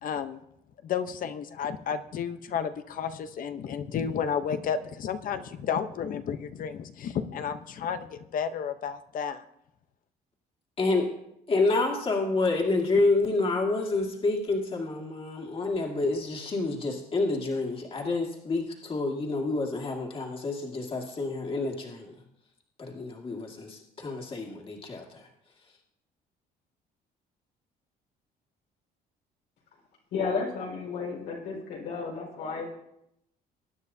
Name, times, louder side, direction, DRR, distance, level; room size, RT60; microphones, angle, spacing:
voice 1, 0.0-0.4 0.8-9.4, left 7 dB, 55° left, 10 dB, 0.9 m, -32 dB
voice 2, 10.8-11.1 11.5-22.1 22.8-25.3, left 3 dB, 35° left, 0 dB, 2.2 m, -28 dB
voice 3, 30.1-32.7, left 4 dB, 85° left, -2 dB, 4.9 m, -32 dB
21.0 x 9.7 x 2.8 m, 0.78 s
cardioid pair, 110°, 17 cm